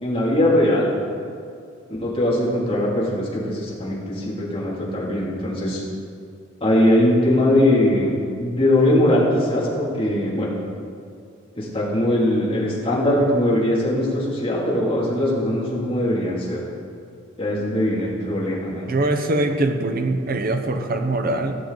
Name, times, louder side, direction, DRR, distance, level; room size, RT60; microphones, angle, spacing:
voice 1, 0.0-0.9 2.0-5.8 6.6-8.1 8.4-10.6 11.5-16.6 17.4-18.9, left 1 dB, 30° left, -6 dB, 2.6 m, -21 dB
voice 2, 18.9-21.6, right 2 dB, 45° right, 6 dB, 0.8 m, -22 dB
16.0 x 7.2 x 4.0 m, 2.3 s
head